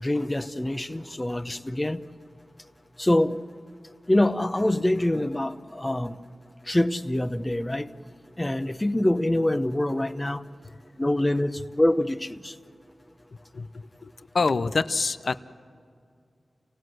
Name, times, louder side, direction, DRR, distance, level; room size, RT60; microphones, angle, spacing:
voice 1, 0.0-2.0 3.0-3.4 4.1-6.1 6.7-7.9 8.4-10.4 11.0-12.2, left 1 dB, 20° left, 0.8 m, -25 dB
voice 2, 13.5-15.4, left 4 dB, 60° left, 0.7 m, -27 dB
28.5 x 17.5 x 7.8 m
wide cardioid pair, 70°, 0 cm